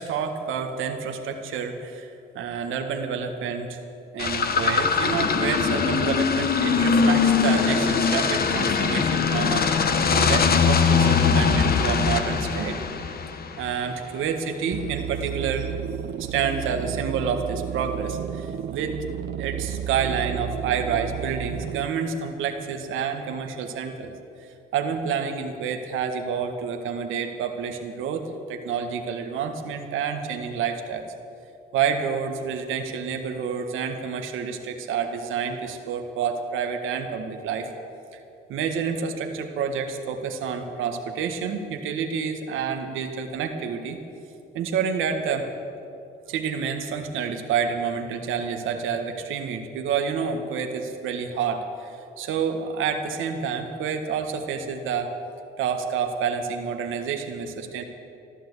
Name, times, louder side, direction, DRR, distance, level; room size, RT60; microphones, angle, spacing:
voice 1, 0.0-3.8 4.1-12.8 13.6-15.7 16.2-19.0 19.4-24.1 24.7-31.0 31.7-37.7 38.1-38.2 38.5-44.0 44.5-45.5 46.3-55.1 55.6-57.8, right 6 dB, 85° right, 5 dB, 1.5 m, -28 dB
sound 1, 4.2-13.7, left 5 dB, 50° left, 1.3 m, -21 dB
sound 2, 14.7-21.9, right 10 dB, 60° right, 0.6 m, -32 dB
14.5 x 11.5 x 8.2 m, 2.7 s
cardioid pair, 90°, 20 cm